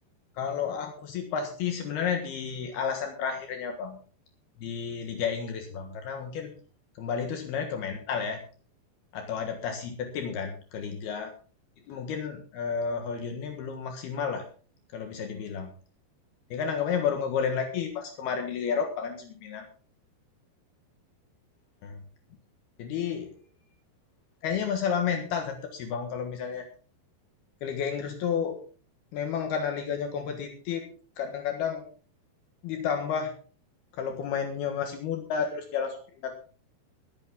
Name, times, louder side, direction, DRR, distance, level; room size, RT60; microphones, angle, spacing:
voice 1, 0.4-4.0 4.6-6.5 7.0-8.4 9.1-11.3 11.9-14.4 14.9-15.7 16.5-19.7 21.8-22.0 22.8-23.3 24.4-26.6 27.6-28.6 29.1-30.9 31.2-31.8 32.6-33.3 34.0-36.4, left 7 dB, 70° left, 4 dB, 3.3 m, -31 dB
21.5 x 8.6 x 3.6 m, 0.39 s
omnidirectional pair, 4.9 m